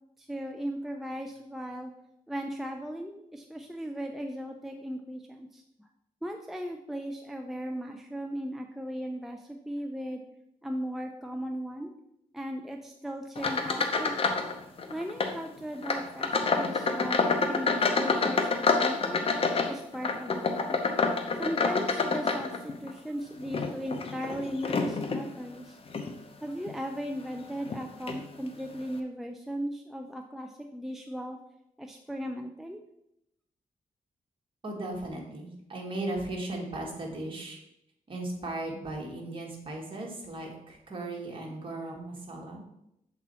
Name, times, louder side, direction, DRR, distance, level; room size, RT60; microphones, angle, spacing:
voice 1, 0.2-1.9 2.3-5.9 6.2-10.2 10.6-11.9 12.3-14.2 14.9-19.2 19.7-20.8 21.4-25.8 26.4-31.4 31.8-32.8, equal, ahead, 4 dB, 0.4 m, -37 dB
sound 1, 13.4-14.5 14.8-15.4 15.8-22.9 23.4-25.3 25.9-26.1 26.7-26.8 27.7-27.8 28.1-28.2, left 4 dB, 45° left, 0.7 m, -28 dB
voice 2, 34.6-37.6 38.1-42.6, right 2 dB, 40° right, -1 dB, 1.7 m, -37 dB
7.2 x 4.1 x 4.2 m, 0.81 s
wide cardioid pair, 120°, 14 cm